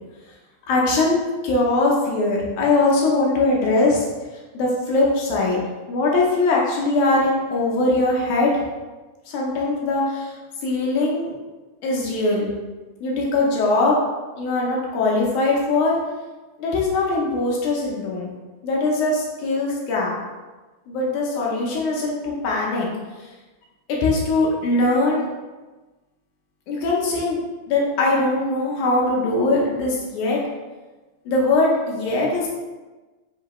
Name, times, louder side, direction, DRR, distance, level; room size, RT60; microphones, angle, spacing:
voice 1, 0.7-4.1 4.5-5.6 5.9-8.6 9.3-10.3 10.6-11.3 11.8-12.5 13.0-14.0 14.4-15.9 16.6-18.3 18.6-20.1 20.9-22.9 23.2-23.3 23.9-25.3 26.7-27.4 27.7-30.4 31.3-32.5, left 2 dB, 75° left, -3 dB, 2.0 m, -21 dB
5.7 x 2.7 x 3.0 m, 1.2 s
omnidirectional pair, 4.1 m